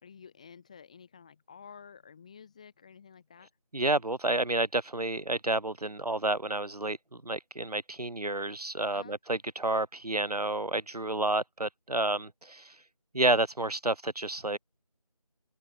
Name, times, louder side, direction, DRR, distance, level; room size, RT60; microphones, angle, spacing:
voice 1, 0.0-3.5 8.9-9.2, left 6 dB, 10° left, 3.0 m, -51 dB
voice 2, 3.7-12.7 13.1-14.6, right 2 dB, 85° right, 1.4 m, -30 dB
open air
figure-of-eight pair, 170°, 19 cm